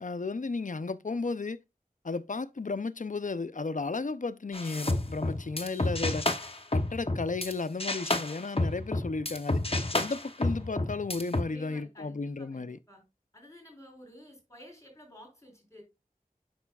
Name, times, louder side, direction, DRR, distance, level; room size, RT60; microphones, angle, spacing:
voice 1, 0.0-1.6 2.0-6.3 6.7-9.6 9.9-12.8, left 3 dB, 60° left, 0.6 m, -34 dB
sound 1, 4.5-7.5 7.8-11.4, left 2 dB, 40° left, 0.9 m, -30 dB
voice 2, 11.4-13.0 13.3-15.8, equal, 20° left, 4.4 m, -52 dB
8.7 x 6.1 x 2.4 m
wide cardioid pair, 40°, 15 cm